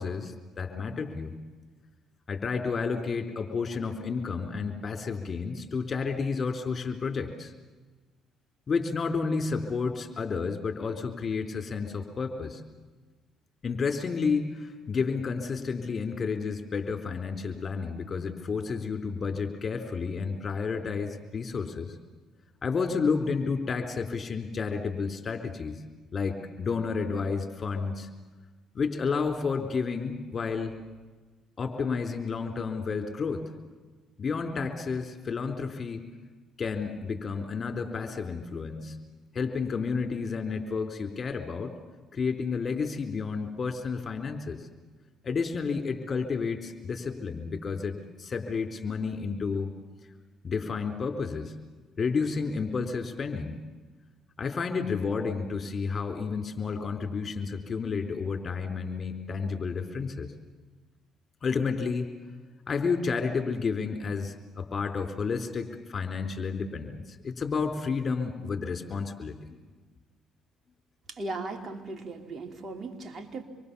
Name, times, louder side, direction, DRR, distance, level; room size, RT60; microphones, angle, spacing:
voice 1, 0.0-1.4 2.3-7.5 8.7-12.6 13.6-21.9 22.6-25.8 26.1-28.1 28.7-30.7 31.6-33.5 34.2-36.0 36.6-39.0 39.3-41.7 42.1-44.7 45.2-49.7 50.4-51.5 52.0-53.6 54.4-60.3 61.4-62.1 62.7-69.4, left 5 dB, 40° left, 6 dB, 4.1 m, -31 dB
voice 2, 71.1-73.4, right 2 dB, 40° right, 5 dB, 3.2 m, -37 dB
27.0 x 23.0 x 7.1 m, 1.3 s
supercardioid pair, 65°, 0 cm